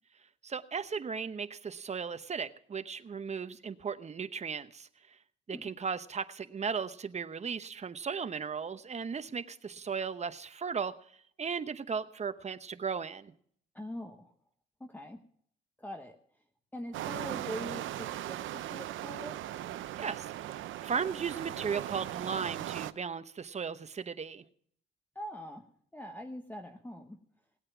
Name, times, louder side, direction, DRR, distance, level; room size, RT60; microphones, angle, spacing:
voice 1, 0.4-4.9 5.5-10.9 11.4-13.3 19.9-24.4, right 6 dB, 35° right, 12 dB, 0.9 m, -36 dB
voice 2, 13.7-14.3 14.8-15.2 15.8-16.2 16.7-19.4 25.1-25.6 25.9-27.2, left 1 dB, 10° left, 5 dB, 1.1 m, -43 dB
sound 1, 16.9-22.9, right 13 dB, 80° right, 0.7 m, -38 dB
18.0 x 8.7 x 5.9 m, 0.62 s
cardioid pair, 90°, 20 cm